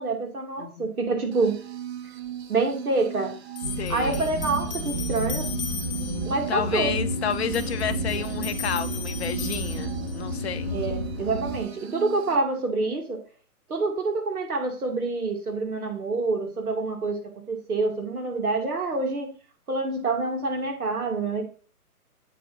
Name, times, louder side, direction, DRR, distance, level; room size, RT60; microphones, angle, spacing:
voice 1, 0.0-1.6 2.5-3.4 3.9-5.5 6.2-7.0 10.7-13.2 13.7-17.2 17.5-19.3 19.7-21.4, right 3 dB, 75° right, 2.4 m, -27 dB
voice 2, 0.6-0.9 3.8-4.3 6.5-10.7, left 8 dB, 45° left, 0.7 m, -30 dB
sound 1, 1.3-12.3, right 11 dB, 45° right, 0.7 m, -38 dB
sound 2, 2.3-2.4 3.6-6.4 7.3-10.4, left 7 dB, 30° left, 1.1 m, -38 dB
sound 3, 3.6-11.6, equal, 15° right, 0.4 m, -31 dB
8.3 x 4.2 x 4.2 m
hypercardioid pair, 145°, 45 cm